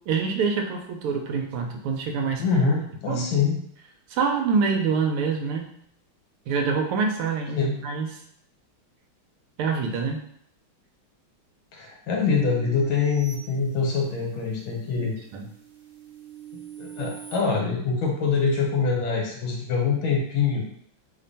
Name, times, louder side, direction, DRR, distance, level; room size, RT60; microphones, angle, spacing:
voice 1, 0.1-2.4 3.1-3.2 4.1-5.7 6.5-8.1 9.6-10.2 14.9-15.5, right 5 dB, 85° right, 3 dB, 1.5 m, -26 dB
voice 2, 2.4-3.6 7.6-7.8 11.7-15.2 16.8-20.6, left 5 dB, 70° left, -1 dB, 1.6 m, -24 dB
sound 1, 12.4-14.3 14.8-17.4, right 9 dB, 55° right, 0.9 m, -43 dB
3.6 x 2.2 x 3.9 m, 0.67 s
omnidirectional pair, 2.4 m